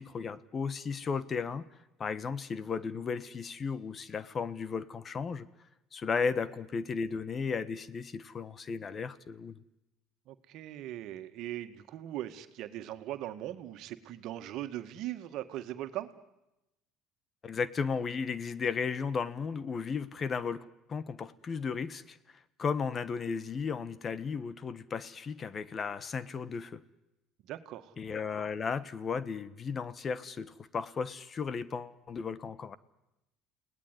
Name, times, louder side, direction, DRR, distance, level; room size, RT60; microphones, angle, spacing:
voice 1, 0.0-1.7 2.0-5.5 5.9-9.6 17.4-22.2 22.6-26.8 28.0-32.8, left 5 dB, 35° left, 17 dB, 1.3 m, -35 dB
voice 2, 10.3-16.1 27.4-27.9, right 13 dB, 65° right, 9 dB, 1.9 m, -40 dB
29.5 x 18.5 x 9.8 m, 0.94 s
supercardioid pair, 95°, 0 cm